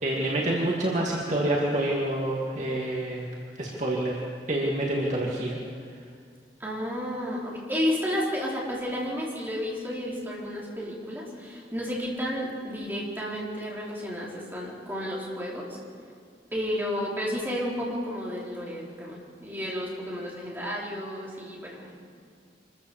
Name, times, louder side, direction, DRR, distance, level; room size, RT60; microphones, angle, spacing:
voice 1, 0.0-3.3 3.6-4.2 4.5-5.6, right 1 dB, 40° right, -3 dB, 2.3 m, -27 dB
voice 2, 6.6-15.8 16.5-22.0, equal, 10° right, -5 dB, 4.6 m, -32 dB
26.0 x 14.5 x 7.3 m, 2.1 s
head